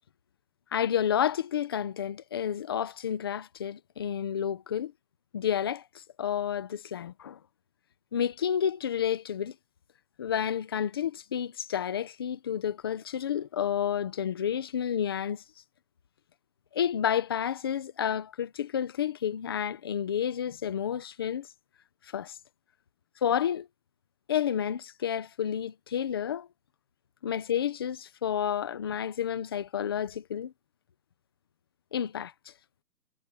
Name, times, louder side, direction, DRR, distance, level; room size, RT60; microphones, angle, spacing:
voice 1, 0.7-4.9 5.3-7.4 8.1-9.5 10.2-15.4 16.7-21.5 22.0-22.4 23.2-23.7 24.3-26.5 27.2-30.5 31.9-32.3, left 9 dB, 15° left, 0.8 m, -30 dB
hypercardioid pair, 160°, 49 cm